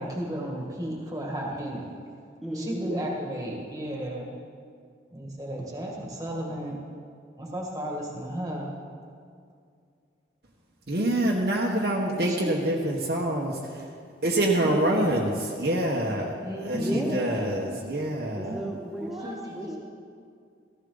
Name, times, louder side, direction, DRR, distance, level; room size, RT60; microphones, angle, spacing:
voice 1, 0.0-1.9 2.5-4.3 5.1-6.8 7.4-8.7 12.2-12.5 14.6-15.1 16.4-17.1 18.4-18.6 19.0-19.8, equal, 20° right, -2 dB, 2.0 m, -34 dB
voice 2, 2.4-3.1 16.7-17.8 18.4-19.8, equal, ahead, -3 dB, 1.9 m, -33 dB
voice 3, 10.9-13.9 14.2-18.6, right 1 dB, 60° right, -2 dB, 1.3 m, -26 dB
15.0 x 15.0 x 4.0 m, 2.3 s
head